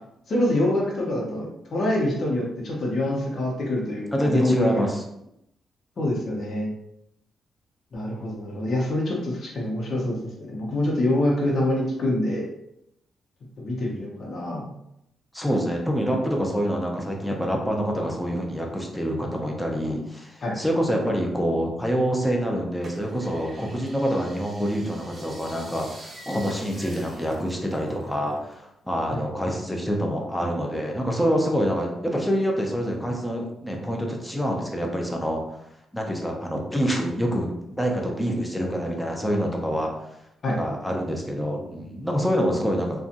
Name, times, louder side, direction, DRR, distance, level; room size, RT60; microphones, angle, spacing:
voice 1, 0.3-4.8 6.0-6.7 7.9-10.2 10.5-12.5 13.6-14.7 20.4-20.6 29.1-29.2 40.4-40.6, left 1 dB, 55° left, -3 dB, 0.8 m, -25 dB
voice 2, 4.1-5.0 15.3-35.4 35.9-37.5 37.8-39.9 40.6-43.0, equal, 5° left, 0 dB, 0.6 m, -26 dB
sound 1, 22.8-28.7 28.9-30.2 30.7-31.5 32.0-32.1, right 1 dB, 30° right, 0.7 m, -46 dB
2.6 x 2.3 x 2.5 m, 0.80 s
cardioid pair, 80°, 0 cm